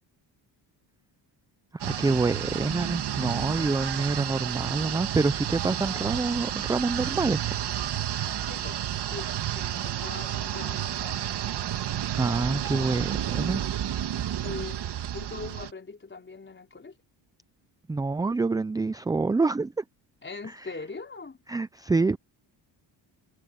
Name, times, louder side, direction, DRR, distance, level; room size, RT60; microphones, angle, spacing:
voice 1, 1.7-7.6 12.2-13.7 17.9-19.8 21.5-22.2, right 3 dB, 10° right, 0.4 m, -27 dB
sound 1, 1.8-15.7, right 11 dB, 60° right, 2.3 m, -31 dB
voice 2, 8.4-8.8 9.1-11.2 14.3-17.0 20.2-21.4, left 4 dB, 25° left, 5.2 m, -41 dB
cardioid pair, 100°, 45 cm